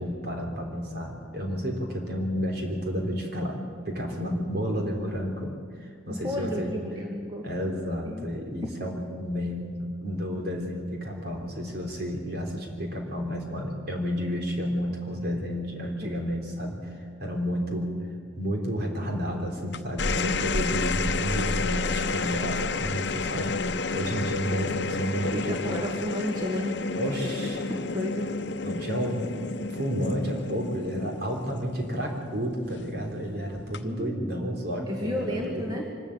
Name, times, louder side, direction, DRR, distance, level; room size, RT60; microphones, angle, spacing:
voice 1, 0.0-3.6 3.9-6.8 7.4-17.9 18.3-25.8 27.0-27.7 28.6-35.6, equal, 55° right, 1 dB, 3.5 m, -31 dB
voice 2, 6.1-7.5 8.0-8.3 16.0-16.1 25.4-26.8 27.1-27.4 27.7-28.3 33.8-34.3 34.9-35.9, left 1 dB, 20° right, 0 dB, 1.7 m, -32 dB
sound 1, 19.7-32.3 33.6-34.0, left 3 dB, 65° left, 0.8 m, -30 dB
25.0 x 13.0 x 8.7 m, 2.1 s
head